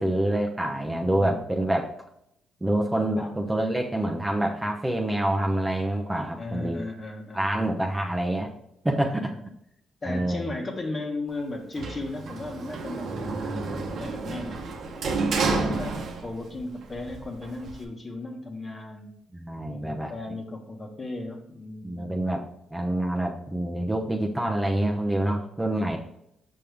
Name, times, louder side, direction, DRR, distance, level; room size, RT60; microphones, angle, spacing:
voice 1, 0.0-1.9 2.6-6.8 7.3-8.5 8.8-9.3 10.0-10.5 13.2-13.9 15.4-16.0 19.3-20.1 21.8-22.4 22.7-26.0, right 1 dB, 10° right, 1 dB, 0.9 m, -27 dB
voice 2, 1.0-1.4 3.2-3.4 6.4-7.4 9.1-9.4 10.0-13.3 13.7-14.6 15.0-19.1 19.7-22.4 25.7-26.0, left 2 dB, 30° left, 3 dB, 1.4 m, -36 dB
Sliding door, 11.8-16.6 16.9-17.8, right 3 dB, 65° right, 1.1 m, -30 dB
6.5 x 5.4 x 3.5 m, 0.77 s
cardioid pair, 90°, 0 cm